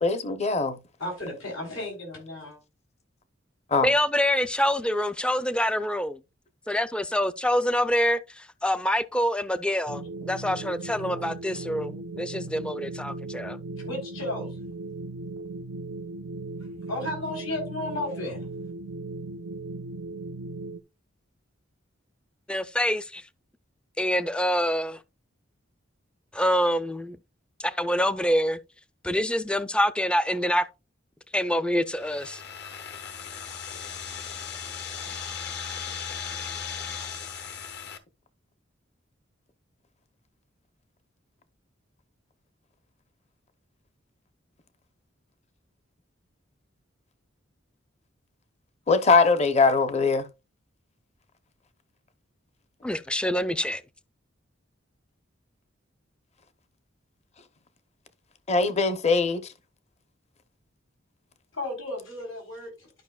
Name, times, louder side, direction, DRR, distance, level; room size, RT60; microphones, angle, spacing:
voice 1, 0.0-0.8 3.7-3.9 48.9-50.3 58.5-59.5, left 4 dB, 35° left, 0.7 m, -21 dB
voice 2, 1.0-2.6 10.4-11.2 11.5-11.6 13.8-14.6 16.6-18.5 61.5-62.9, left 1 dB, 85° left, 3.5 m, -35 dB
voice 3, 3.8-6.2 6.7-13.6 22.5-23.2 24.0-25.0 26.3-27.2 27.6-28.6 29.0-30.7 31.3-32.4 52.8-53.8, equal, 5° left, 0.3 m, -26 dB
sound 1, 9.9-20.8, right 2 dB, 75° right, 0.6 m, -37 dB
sound 2, 31.9-38.0, left 7 dB, 55° left, 1.0 m, -37 dB
11.5 x 5.5 x 2.3 m
head